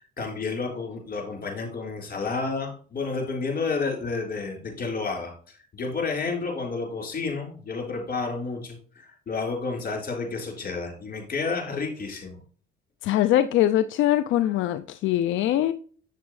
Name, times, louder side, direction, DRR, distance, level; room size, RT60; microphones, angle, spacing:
voice 1, 0.0-12.4, left 4 dB, 45° left, 1 dB, 3.8 m, -31 dB
voice 2, 13.0-15.7, left 12 dB, 80° left, 11 dB, 0.4 m, -22 dB
8.4 x 7.0 x 3.1 m, 0.43 s
cardioid pair, 90°, 20 cm